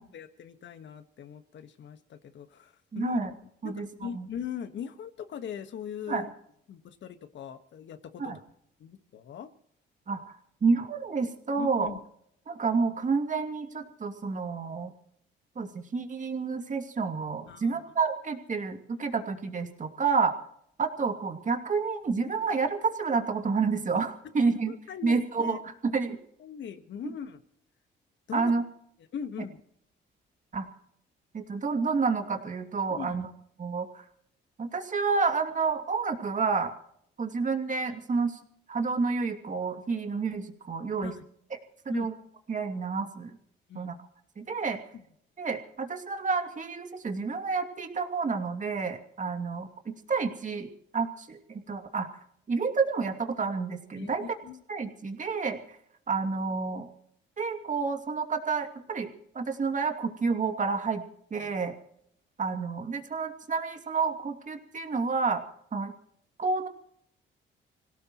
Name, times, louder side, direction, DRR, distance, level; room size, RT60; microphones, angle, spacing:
voice 1, 0.0-3.3 3.6-6.3 6.7-8.3 8.8-9.5 11.6-12.0 17.5-17.8 24.7-25.6 26.4-27.4 28.3-28.5 29.1-29.6 32.9-33.3 41.0-41.2 41.9-42.1 43.7-43.9 44.9-45.1 53.9-54.6 61.3-61.5, left 8 dB, 65° left, 9 dB, 1.6 m, -40 dB
voice 2, 2.9-3.3 3.6-3.9 4.1-4.3 6.1-6.2 8.2-8.4 10.1-10.3 10.6-11.9 12.5-14.9 15.6-20.3 20.8-24.7 25.0-26.2 28.3-28.6 30.5-30.7 31.3-33.3 33.6-34.0 34.6-36.7 37.2-38.4 38.7-41.1 41.9-42.1 42.5-43.3 43.7-44.0 44.4-44.8 45.4-50.7 50.9-52.1 52.5-54.2 54.7-55.6 56.1-56.9 57.4-59.1 59.3-61.0 61.3-61.7 62.4-65.4 65.7-65.9 66.4-66.7, right 4 dB, 40° right, 5 dB, 2.6 m, -29 dB
26.0 x 17.5 x 3.1 m, 0.71 s
cardioid pair, 90°, 20 cm